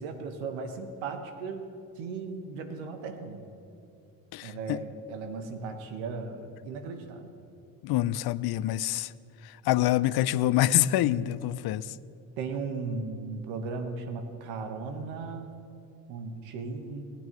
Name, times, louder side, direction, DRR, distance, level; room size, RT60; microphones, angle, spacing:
voice 1, 0.0-1.7 2.0-3.4 4.4-7.3 12.4-15.5 16.1-17.0, right 4 dB, 80° right, 1.4 m, -36 dB
voice 2, 4.3-4.8 7.8-9.1 9.4-11.9, left 14 dB, 55° left, 0.5 m, -26 dB
19.5 x 9.6 x 3.1 m
hypercardioid pair, 60°, 46 cm